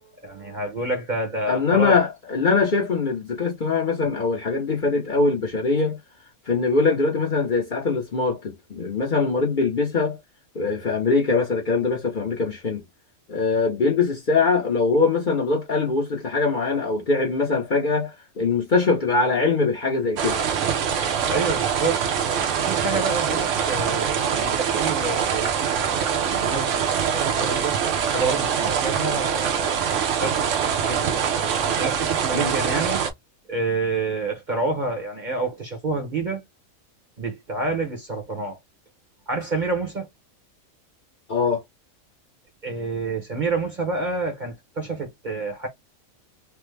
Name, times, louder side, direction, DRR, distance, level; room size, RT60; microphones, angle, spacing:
voice 1, 0.2-2.0 21.3-22.0 22.6-27.8 28.1-31.3 31.8-33.0 33.5-36.4 37.2-38.6 39.3-40.1 42.6-45.7, right 3 dB, 40° right, 0.8 m, -28 dB
voice 2, 1.5-6.0 6.5-10.2 10.5-12.8 13.3-20.4 32.3-32.5 41.3-41.6, left 4 dB, 45° left, 0.8 m, -22 dB
sound 1, 20.2-33.1, right 7 dB, 70° right, 0.9 m, -24 dB
3.3 x 2.0 x 3.2 m
omnidirectional pair, 1.5 m